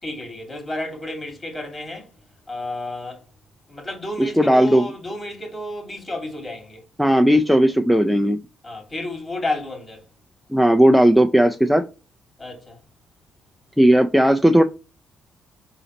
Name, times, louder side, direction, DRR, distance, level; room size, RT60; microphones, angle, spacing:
voice 1, 0.0-2.2 2.5-3.2 3.7-6.8 8.6-10.0 12.4-12.8, left 1 dB, 30° left, 2.5 m, -31 dB
voice 2, 4.2-4.8 7.0-8.4 10.5-11.8 13.8-14.6, equal, ahead, 0.4 m, -16 dB
4.0 x 3.9 x 3.1 m
cardioid pair, 90°, 0 cm